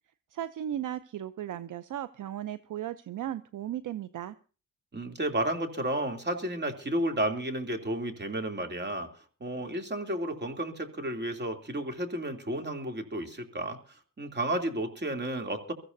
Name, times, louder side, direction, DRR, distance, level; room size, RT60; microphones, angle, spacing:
voice 1, 0.3-4.4, right 11 dB, 65° right, 14 dB, 0.7 m, -36 dB
voice 2, 4.9-9.1 9.4-15.7, right 1 dB, 30° right, 5 dB, 3.0 m, -32 dB
23.0 x 15.0 x 2.7 m, 0.37 s
cardioid pair, 60°, 33 cm